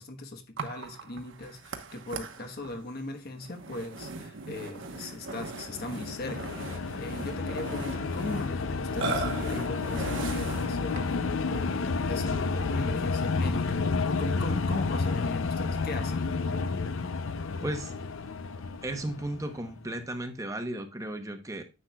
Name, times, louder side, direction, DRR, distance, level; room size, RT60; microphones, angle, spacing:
voice 1, 0.0-6.5 7.0-16.2, left 2 dB, 45° left, 1.1 m, -39 dB
Burping eructation, 0.6-11.3, right 3 dB, 55° right, 1.0 m, -39 dB
sound 1, 5.2-19.7, left 4 dB, 60° left, 0.5 m, -31 dB
voice 2, 17.6-17.9 18.8-21.6, right 1 dB, 15° right, 0.9 m, -35 dB
9.8 x 7.8 x 2.3 m
head